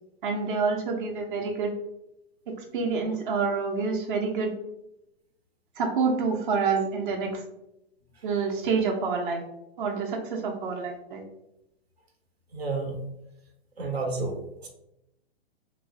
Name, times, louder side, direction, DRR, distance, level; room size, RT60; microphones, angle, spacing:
voice 1, 0.2-1.7 2.7-4.5 5.8-7.4 8.2-9.4 9.8-11.2, right 4 dB, 55° right, 2 dB, 0.6 m, -27 dB
voice 2, 12.5-13.0 13.8-14.7, right 3 dB, 90° right, 2 dB, 0.8 m, -31 dB
3.0 x 2.0 x 2.5 m, 0.85 s
hypercardioid pair, 115°, 30 cm